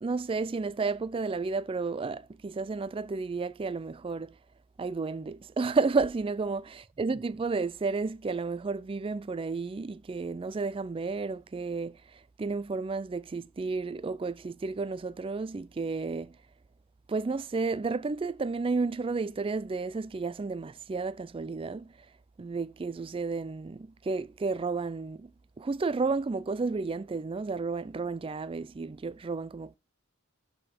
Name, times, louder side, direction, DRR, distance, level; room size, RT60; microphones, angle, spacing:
voice 1, 0.0-4.3 4.8-6.7 7.0-16.3 17.1-21.9 22.4-25.3 25.6-29.8, right 4 dB, 25° right, 0.3 m, -32 dB
11.0 x 4.9 x 4.3 m
head